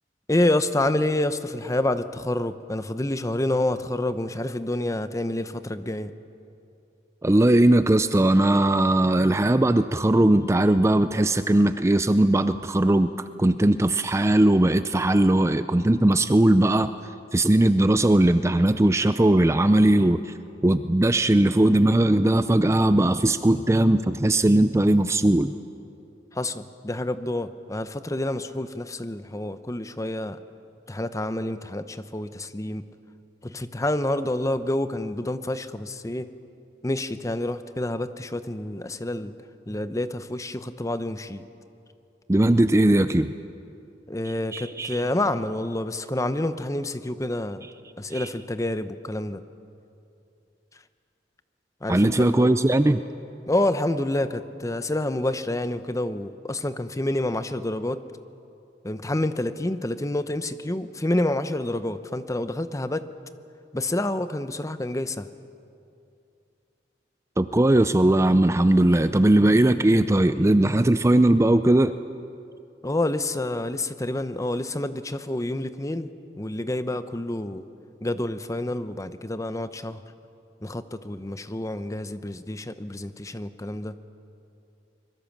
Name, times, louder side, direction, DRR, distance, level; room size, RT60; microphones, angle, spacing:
voice 1, 0.3-6.1 26.3-30.4 30.9-32.8 33.4-36.3 36.8-39.3 39.7-41.4 44.1-47.7 48.0-49.4 51.8-52.5 53.5-58.0 58.8-63.0 63.7-65.3 72.8-76.1 76.4-77.6 78.0-80.0 80.6-84.0, left 1 dB, 20° left, 12 dB, 0.8 m, -28 dB
voice 2, 7.2-13.1 13.4-16.9 17.3-20.3 20.6-25.5 42.3-43.4 44.5-45.0 48.1-48.3 51.9-53.0 67.4-71.9, right 1 dB, 15° right, 11 dB, 0.5 m, -19 dB
24.5 x 22.5 x 7.3 m, 2.6 s
head